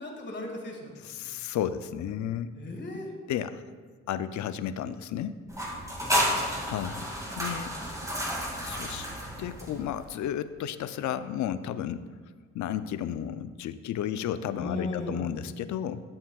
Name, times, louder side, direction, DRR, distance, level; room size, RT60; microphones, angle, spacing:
voice 1, 0.0-0.9 2.6-3.1 6.0-6.2 14.6-15.3, left 2 dB, 35° left, 1 dB, 1.8 m, -36 dB
voice 2, 1.0-2.5 3.3-3.6 4.1-5.3 5.7-5.9 6.7-7.1 7.4-7.7 8.6-9.1 9.4-12.1 12.5-16.0, left 10 dB, 65° left, 13 dB, 0.5 m, -33 dB
sound 1, 5.5-10.1, equal, 10° right, 2.2 m, -31 dB
11.5 x 7.3 x 2.3 m, 1.5 s
cardioid pair, 75°, 31 cm